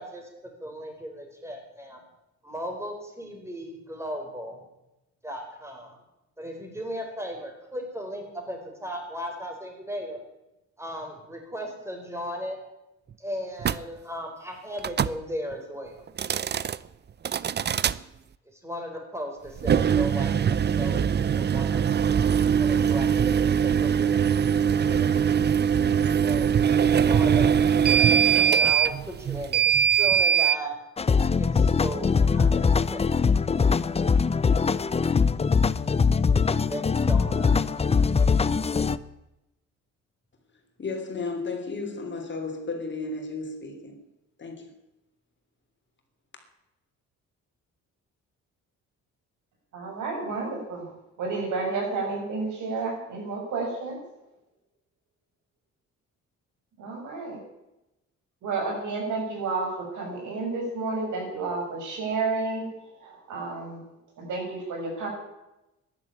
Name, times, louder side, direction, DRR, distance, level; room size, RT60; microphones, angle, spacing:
voice 1, 0.0-2.0 2.4-4.6 5.2-6.0 6.4-10.2 10.8-12.6 13.2-16.1 18.4-22.2 22.6-25.4 26.2-28.1 28.5-30.8 31.4-33.3 36.7-37.6, equal, 10° right, 4.8 m, -37 dB
sound 1, 13.6-13.8 14.8-15.2 16.1-16.8 17.2-18.0 19.6-30.6, right 8 dB, 35° right, 0.6 m, -22 dB
sound 2, 31.0-39.0, left 5 dB, 20° left, 0.6 m, -22 dB
voice 2, 40.8-44.0 44.4-44.7, left 3 dB, 40° left, 3.1 m, -33 dB
voice 3, 49.7-50.8 51.2-54.0 56.8-57.4 58.4-62.7 63.0-63.8 64.2-65.1, right 3 dB, 75° right, 6.5 m, -31 dB
12.5 x 11.0 x 8.7 m
cardioid pair, 90°, 30 cm